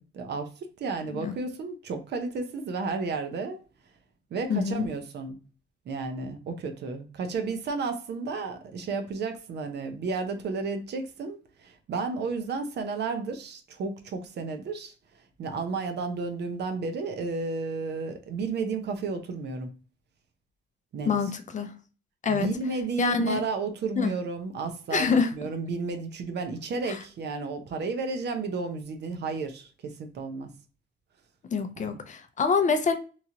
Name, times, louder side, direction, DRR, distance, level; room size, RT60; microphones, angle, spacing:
voice 1, 0.0-3.6 4.3-5.4 5.9-14.9 15.4-19.7 20.9-21.3 22.3-30.5 31.8-32.0, right 4 dB, 60° right, 0.6 m, -32 dB
voice 2, 4.5-4.9 21.1-21.7 22.2-22.5 23.0-23.4 24.0-24.1 24.9-25.3 26.9-27.0 31.5-32.9, left 5 dB, 40° left, 0.5 m, -25 dB
2.9 x 2.5 x 2.8 m
cardioid pair, 90°, 20 cm